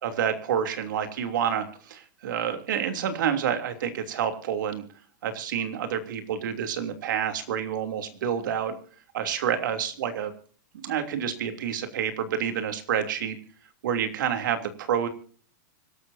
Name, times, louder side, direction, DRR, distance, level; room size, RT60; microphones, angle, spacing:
voice 1, 0.0-4.8 5.2-8.7 9.1-10.3 10.8-13.4 13.8-15.1, right 8 dB, 75° right, 7 dB, 3.1 m, -28 dB
25.5 x 13.0 x 2.8 m, 0.43 s
supercardioid pair, 145°, 11 cm